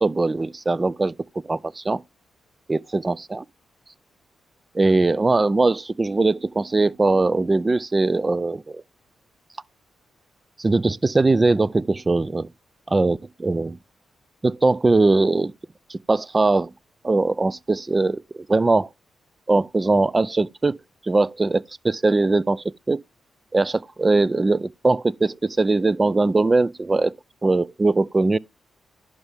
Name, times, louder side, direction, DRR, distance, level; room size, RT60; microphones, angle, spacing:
voice 1, 0.0-1.1 1.5-2.0 2.7-3.4 4.7-8.8 10.6-12.5 12.9-13.8 14.4-15.5 15.9-16.7 17.0-18.2 18.5-18.9 19.5-20.8 21.0-23.0 23.5-27.1 27.4-28.4, right 3 dB, 30° right, 0.4 m, -21 dB
11.0 x 5.5 x 3.4 m
cardioid pair, 65°, 0 cm